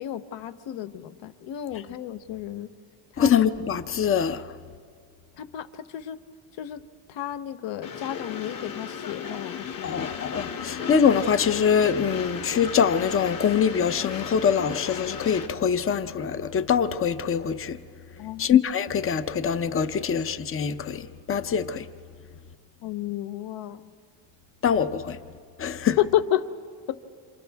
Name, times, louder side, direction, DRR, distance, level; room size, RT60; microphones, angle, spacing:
voice 1, 0.0-2.7 3.1-3.3 5.4-6.2 6.6-6.8 7.1-10.0 18.2-18.6 22.8-23.8 26.0-26.5, left 12 dB, 65° left, 1.1 m, -31 dB
voice 2, 3.2-4.5 9.8-17.8 18.4-21.9 24.6-25.2 25.6-26.0, left 7 dB, 25° left, 0.7 m, -24 dB
Train, 7.8-15.5, left 6 dB, 45° left, 1.7 m, -35 dB
28.5 x 27.5 x 3.5 m
cardioid pair, 140°, 50 cm